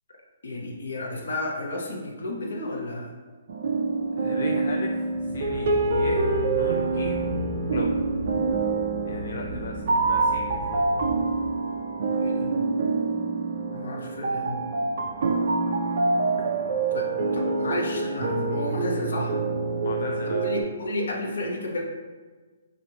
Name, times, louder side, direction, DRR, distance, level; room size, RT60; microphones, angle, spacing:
voice 1, 0.4-3.1 12.1-12.5 13.7-14.6 16.9-19.4 20.2-21.8, left 1 dB, 75° left, -1 dB, 1.0 m, -32 dB
sound 1, 3.5-20.6, right 3 dB, 45° right, 0.4 m, -26 dB
voice 2, 4.2-7.3 7.7-7.9 9.1-10.8 19.8-20.4, left 4 dB, 55° left, 1 dB, 0.3 m, -36 dB
sound 2, 5.1-11.6, equal, 20° right, 1.0 m, -36 dB
6.3 x 2.5 x 2.9 m, 1.4 s
hypercardioid pair, 180°, 0 cm